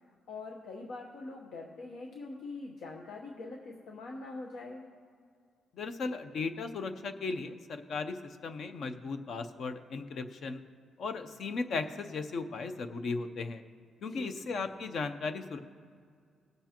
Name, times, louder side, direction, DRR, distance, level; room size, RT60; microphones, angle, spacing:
voice 1, 0.3-4.8 14.1-14.4, left 3 dB, 80° left, 0 dB, 1.0 m, -43 dB
voice 2, 5.8-8.2 8.4-10.6 11.0-13.6 14.0-15.6, left 4 dB, 50° left, 8 dB, 0.6 m, -36 dB
19.0 x 7.9 x 2.9 m, 2.1 s
cardioid pair, 170°, 0 cm